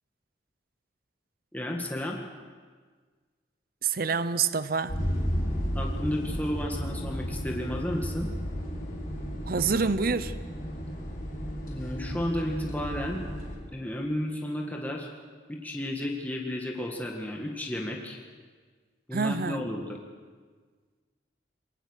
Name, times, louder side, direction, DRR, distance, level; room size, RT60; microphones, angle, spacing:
voice 1, 1.5-2.2 5.8-8.3 11.7-13.2 13.7-15.1 15.5-18.2 19.1-20.0, left 1 dB, 10° left, 0 dB, 1.9 m, -33 dB
voice 2, 3.8-5.0 9.5-10.3 19.1-19.6, right 5 dB, 55° right, 14 dB, 0.7 m, -27 dB
sound 1, 4.9-13.6, equal, 50° left, 5.1 m, -33 dB
22.5 x 18.5 x 6.6 m, 1.5 s
head